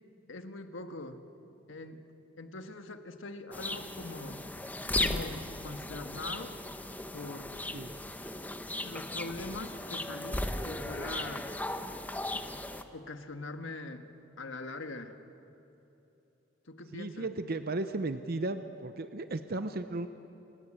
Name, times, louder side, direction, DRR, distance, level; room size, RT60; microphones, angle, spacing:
voice 1, 0.3-1.2 1.7-2.0 2.4-4.5 5.0-6.5 7.1-7.6 8.8-11.5 12.3-12.5 12.9-14.1 14.4-15.2 16.6-17.3, left 2 dB, 90° left, 7 dB, 1.6 m, -42 dB
sound 1, 3.5-12.8, left 1 dB, 10° left, 1.0 m, -37 dB
voice 2, 16.9-20.1, right 2 dB, 55° right, 10 dB, 0.8 m, -35 dB
29.5 x 17.5 x 7.6 m, 3.0 s
head